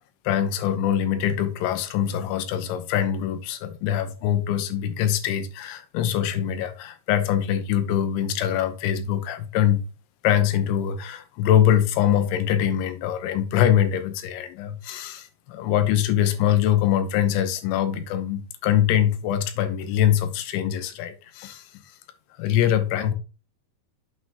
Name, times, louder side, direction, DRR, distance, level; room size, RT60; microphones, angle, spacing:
voice 1, 0.3-9.9 10.2-21.6 22.4-23.1, left 10 dB, 85° left, 3.3 m, -23 dB
8.3 x 5.9 x 2.9 m
omnidirectional pair, 5.2 m